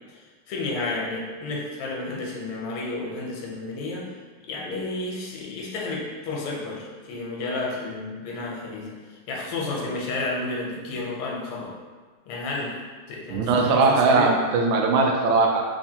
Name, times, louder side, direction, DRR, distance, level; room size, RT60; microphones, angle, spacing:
voice 1, 0.5-4.1 4.5-9.0 9.3-11.7 12.2-12.8 13.1-14.3, left 2 dB, 85° left, -3 dB, 1.7 m, -31 dB
voice 2, 13.3-15.6, right 3 dB, 75° right, 1 dB, 1.3 m, -20 dB
3.6 x 3.3 x 2.7 m, 1.5 s
omnidirectional pair, 2.4 m